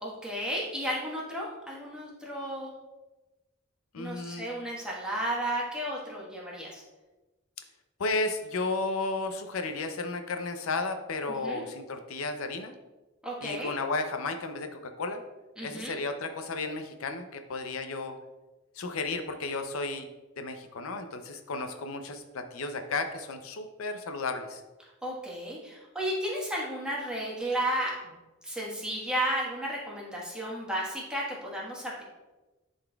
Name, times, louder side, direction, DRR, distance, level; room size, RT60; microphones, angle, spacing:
voice 1, 0.0-2.7 4.0-6.8 11.3-11.6 13.2-13.7 15.6-16.0 25.0-28.2 28.4-32.0, right 1 dB, 5° right, -4 dB, 1.3 m, -33 dB
voice 2, 3.9-4.4 8.0-12.7 13.4-14.7 15.0-15.2 15.6-18.2 18.8-20.1 20.4-24.6, left 3 dB, 85° left, 7 dB, 0.6 m, -33 dB
10.5 x 4.0 x 2.3 m, 1.1 s
head